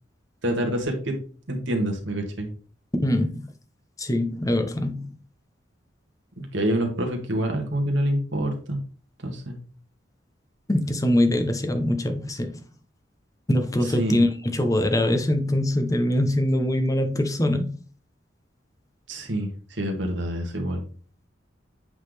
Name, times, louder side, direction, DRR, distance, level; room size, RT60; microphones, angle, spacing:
voice 1, 0.4-1.1 1.5-2.5 6.5-8.8 9.2-9.6 14.0-14.2 19.1-20.8, right 1 dB, 70° right, 1.8 m, -26 dB
voice 2, 3.0-3.5 4.0-5.1 10.7-12.6 13.5-17.8, left 1 dB, 20° left, 0.9 m, -23 dB
8.1 x 4.0 x 3.3 m
head